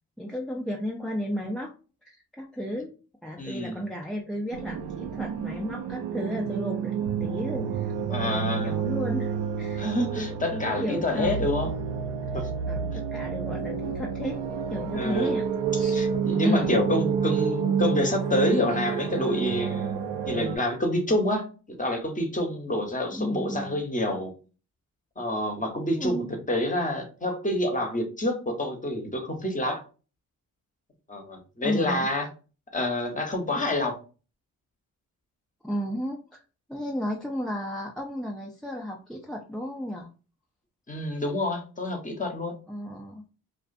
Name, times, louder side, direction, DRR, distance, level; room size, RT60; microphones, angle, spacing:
voice 1, 0.2-1.7 2.0-2.9 3.2-9.8 10.1-11.5 12.2-12.3 12.7-14.4 14.7-15.5 15.7-16.0 16.4-16.8 23.1-23.8 26.0-26.3 31.6-32.3 35.6-36.4 36.7-40.1 42.7-43.2, equal, ahead, 0.4 m, -33 dB
voice 2, 3.4-3.8 8.1-8.7 9.8-11.7 12.3-12.5 14.9-15.3 15.9-20.0 20.3-24.3 25.2-29.8 31.1-32.3 32.7-34.0 40.9-42.6, left 1 dB, 20° left, 0.9 m, -28 dB
sound 1, 4.5-20.6, right 6 dB, 85° right, 0.6 m, -29 dB
2.4 x 2.4 x 2.3 m
supercardioid pair, 55°, 40 cm